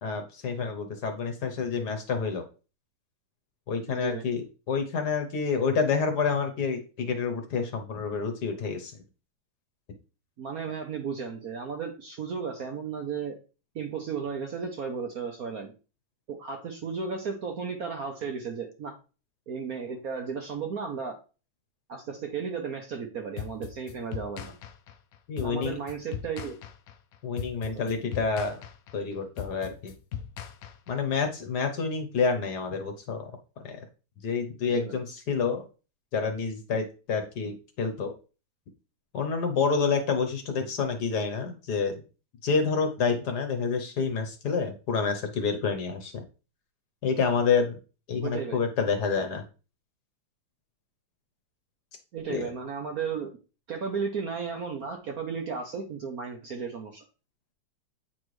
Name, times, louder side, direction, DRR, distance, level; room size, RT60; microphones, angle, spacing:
voice 1, 0.0-2.4 3.7-9.0 25.3-25.7 27.2-28.6 28.9-29.9 30.9-33.3 33.6-33.8 34.2-35.6 36.1-38.1 39.1-42.0 42.4-46.2 47.0-47.8 48.1-49.4 52.3-52.5, left 5 dB, 60° left, 6 dB, 1.3 m, -28 dB
voice 2, 3.9-4.2 10.4-13.4 13.7-15.7 16.3-19.0 19.5-21.2 21.9-24.6 25.4-26.6 27.7-27.9 34.7-34.9 48.2-48.6 52.1-53.3 53.7-57.0, right 6 dB, 60° right, 3 dB, 1.0 m, -34 dB
sound 1, 23.4-31.2, left 9 dB, 80° left, 0.8 m, -39 dB
8.3 x 4.3 x 3.2 m, 0.34 s
omnidirectional pair, 2.3 m